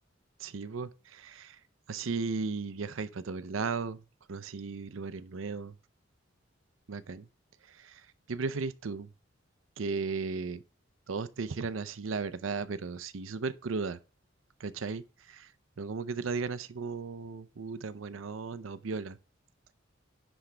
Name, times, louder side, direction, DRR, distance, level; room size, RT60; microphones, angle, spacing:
voice 1, 0.4-1.6 1.9-5.8 6.9-7.3 7.7-9.1 9.8-10.6 11.1-14.0 14.6-15.5 15.8-19.2, right 4 dB, 85° right, 0.6 m, -36 dB
10.0 x 3.4 x 4.9 m
head